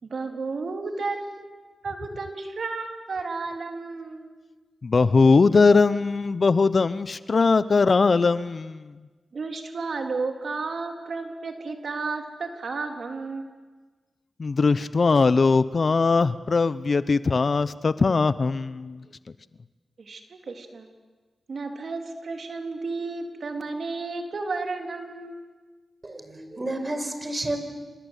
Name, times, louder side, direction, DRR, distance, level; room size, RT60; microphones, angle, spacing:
voice 1, 0.0-4.3 9.3-13.5 20.0-20.9 21.5-25.4, right 3 dB, 60° right, 4 dB, 3.5 m, -32 dB
voice 2, 4.8-8.9 14.4-19.0, left 4 dB, 50° left, 15 dB, 0.9 m, -20 dB
voice 3, 26.0-27.6, right 1 dB, 30° right, 8 dB, 5.3 m, -30 dB
27.5 x 26.5 x 8.3 m, 1.3 s
cardioid pair, 55°, 0 cm